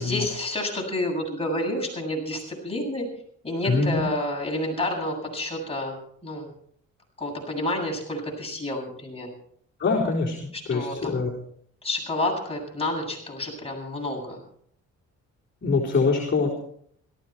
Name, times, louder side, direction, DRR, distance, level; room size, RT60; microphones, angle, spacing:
voice 1, 0.0-3.1 3.4-6.5 7.2-9.3 10.5-11.3 11.8-14.4, left 1 dB, 20° left, -1 dB, 7.8 m, -29 dB
voice 2, 3.6-4.0 9.8-10.3 10.7-11.3 15.6-16.5, left 4 dB, 35° left, -5 dB, 4.1 m, -23 dB
17.5 x 15.0 x 4.6 m, 0.63 s
cardioid pair, 90°, 30 cm